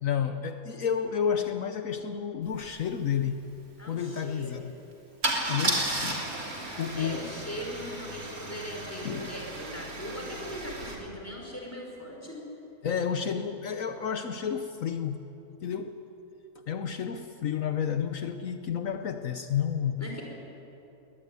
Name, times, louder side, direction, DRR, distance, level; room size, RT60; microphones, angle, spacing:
voice 1, 0.0-3.4 3.8-4.7 5.5-6.3 6.8-7.3 9.0-9.3 12.8-15.3 15.6-16.0 16.7-20.0, left 8 dB, 65° left, 8 dB, 1.2 m, -31 dB
Car / Engine starting / Idling, 2.6-2.7 3.0-3.2 5.2-10.9, right 2 dB, 70° right, 3.7 m, -33 dB
voice 2, 3.8-4.7 6.9-12.5 20.0-20.2, equal, 10° left, 0 dB, 5.0 m, -39 dB
22.0 x 19.0 x 9.6 m, 2.9 s
omnidirectional pair, 1.6 m